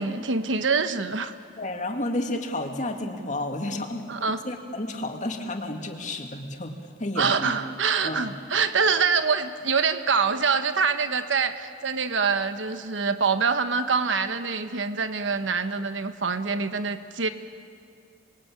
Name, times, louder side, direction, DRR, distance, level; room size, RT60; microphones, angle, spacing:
voice 1, 0.0-1.3 4.1-4.4 7.2-17.3, right 5 dB, 85° right, 10 dB, 1.2 m, -25 dB
voice 2, 1.6-4.1 4.4-6.7 7.0-7.5 8.0-8.3, left 1 dB, 40° left, 3 dB, 2.3 m, -31 dB
27.0 x 21.5 x 8.7 m, 2.3 s
head